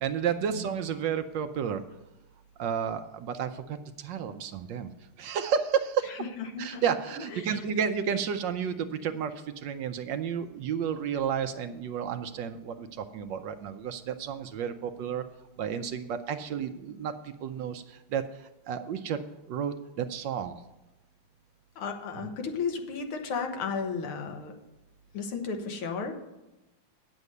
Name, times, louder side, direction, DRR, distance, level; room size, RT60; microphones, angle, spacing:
voice 1, 0.0-1.8 2.6-4.9 5.2-6.1 6.6-15.2 15.6-19.2 19.5-20.6 22.2-22.3, right 7 dB, 70° right, 9 dB, 1.2 m, -31 dB
voice 2, 6.1-6.8 7.3-7.6 21.8-24.5 25.1-26.1, left 5 dB, 90° left, 4 dB, 2.1 m, -34 dB
9.5 x 7.1 x 6.6 m, 1.0 s
omnidirectional pair, 2.3 m